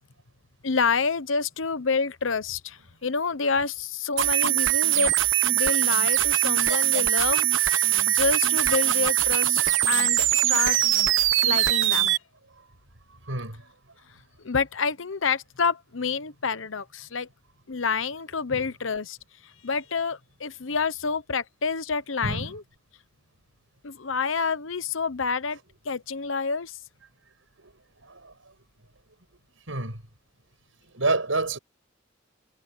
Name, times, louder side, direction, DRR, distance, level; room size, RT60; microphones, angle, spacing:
voice 1, 0.6-5.2 5.5-7.6 8.1-9.6 9.9-10.8 11.4-12.1 14.4-17.3 17.7-19.2 19.6-22.6 23.8-25.6 25.8-26.8, left 5 dB, 75° left, 1.0 m, -28 dB
sound 1, 4.2-12.2, right 13 dB, 70° right, 1.3 m, -22 dB
voice 2, 13.3-13.6 18.5-18.6 22.2-22.5 28.0-28.3 29.7-30.0 30.9-31.6, right 2 dB, 90° right, 6.2 m, -28 dB
head